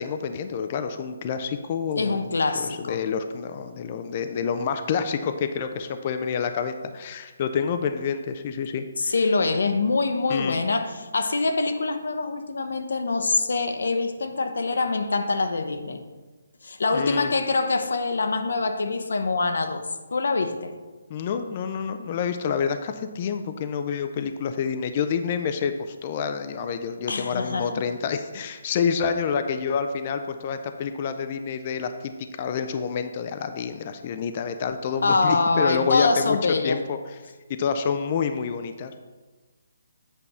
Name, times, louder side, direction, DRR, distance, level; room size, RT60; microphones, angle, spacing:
voice 1, 0.0-2.3 2.6-8.9 10.3-10.6 16.9-17.3 21.1-32.1 32.4-36.4 36.6-37.0 37.6-39.0, left 6 dB, 30° left, 8 dB, 0.4 m, -28 dB
voice 2, 1.9-3.0 9.0-16.0 16.6-19.8 20.1-20.7 27.1-27.8 35.0-36.8, left 3 dB, 75° left, 7 dB, 0.8 m, -24 dB
8.3 x 3.5 x 5.5 m, 1.3 s
hypercardioid pair, 170°, 0 cm